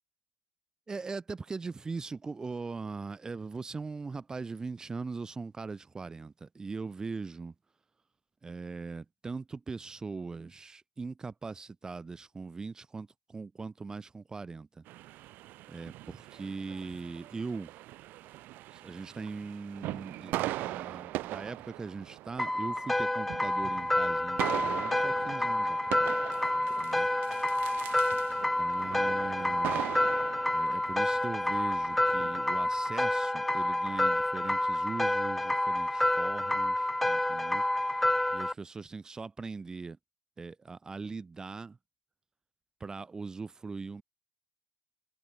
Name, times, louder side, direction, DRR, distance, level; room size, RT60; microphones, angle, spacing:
voice 1, 0.9-7.5 8.4-14.8 15.7-17.7 18.7-26.2 26.5-27.1 28.3-29.8 30.5-37.6 38.3-40.0 40.4-41.8 42.8-44.0, right 4 dB, 20° right, 0.9 m, -40 dB
sound 1, 14.9-32.4, right 17 dB, 60° right, 2.8 m, -41 dB
sound 2, 22.4-38.5, left 1 dB, 5° left, 0.6 m, -29 dB
hypercardioid pair, 90°, 4 cm